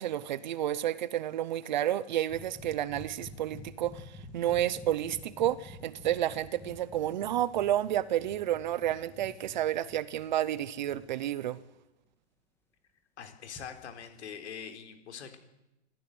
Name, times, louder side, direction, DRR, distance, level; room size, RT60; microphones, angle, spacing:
voice 1, 0.0-11.6, right 12 dB, 45° right, 0.9 m, -31 dB
sound 1, 2.3-11.1 13.5-13.9, left 2 dB, 5° left, 1.6 m, -49 dB
voice 2, 13.2-15.4, left 7 dB, 75° left, 4.3 m, -43 dB
25.5 x 14.5 x 7.9 m
supercardioid pair, 175°, 34 cm